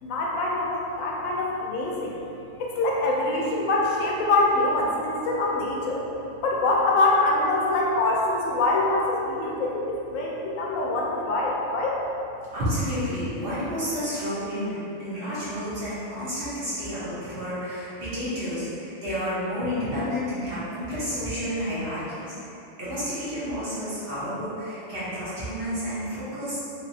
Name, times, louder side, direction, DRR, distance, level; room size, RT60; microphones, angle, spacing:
voice 1, 0.0-2.2 2.6-6.0 6.4-12.0, left 2 dB, 85° left, -2 dB, 1.0 m, -24 dB
voice 2, 12.5-26.6, equal, 50° right, -11 dB, 1.2 m, -30 dB
3.3 x 3.1 x 2.6 m, 2.9 s
omnidirectional pair, 1.4 m